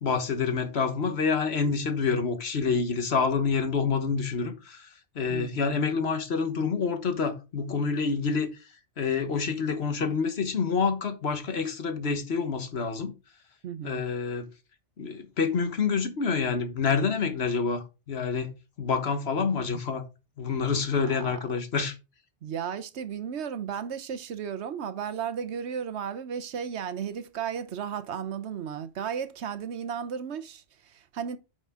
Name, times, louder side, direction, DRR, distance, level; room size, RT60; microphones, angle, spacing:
voice 1, 0.0-4.9 5.1-8.5 9.0-13.1 13.8-14.5 15.0-18.5 18.8-20.0 20.4-21.9, left 5 dB, 70° left, 1.5 m, -27 dB
voice 2, 5.3-5.8 13.6-14.0 21.0-21.4 22.4-31.4, right 8 dB, 80° right, 1.1 m, -34 dB
9.0 x 5.3 x 3.6 m
omnidirectional pair, 1.1 m